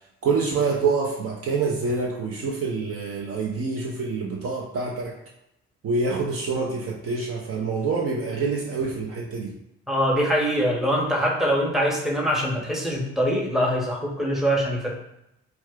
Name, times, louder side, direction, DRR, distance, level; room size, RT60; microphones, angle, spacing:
voice 1, 0.2-5.2 5.8-9.5, right 4 dB, 40° right, -1 dB, 0.6 m, -26 dB
voice 2, 9.9-15.0, equal, ahead, -2 dB, 0.8 m, -23 dB
2.5 x 2.3 x 3.5 m, 0.83 s
hypercardioid pair, 50°, 34 cm